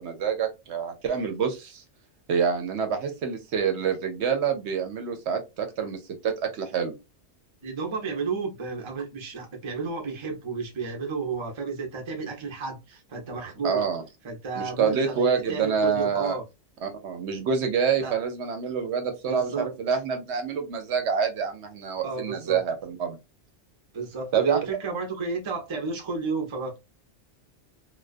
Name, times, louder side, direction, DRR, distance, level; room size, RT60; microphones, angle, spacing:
voice 1, 0.0-1.8 2.3-7.0 13.6-14.0 14.6-16.4 16.8-23.2 24.3-24.6, right 6 dB, 75° right, 0.9 m, -27 dB
voice 2, 7.6-13.9 14.2-16.4 18.0-18.1 19.3-19.7 22.0-22.6 23.9-26.8, right 4 dB, 35° right, 0.5 m, -32 dB
2.3 x 2.2 x 2.4 m
omnidirectional pair, 1.2 m